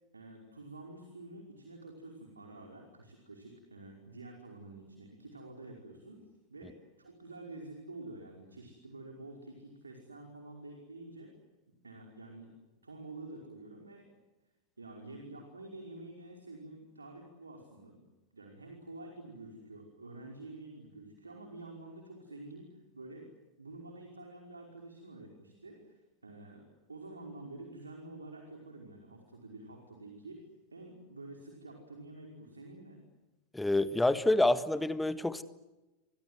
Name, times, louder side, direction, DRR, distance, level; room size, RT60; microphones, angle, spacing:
voice 1, 0.1-11.3 11.8-12.5 12.8-14.1 14.8-18.0 18.3-23.3 23.6-33.0, right 2 dB, 75° right, 2 dB, 5.2 m, -49 dB
voice 2, 33.5-35.4, left 2 dB, 5° left, 13 dB, 1.5 m, -27 dB
30.0 x 25.0 x 8.0 m, 1.1 s
figure-of-eight pair, 90°, 0 cm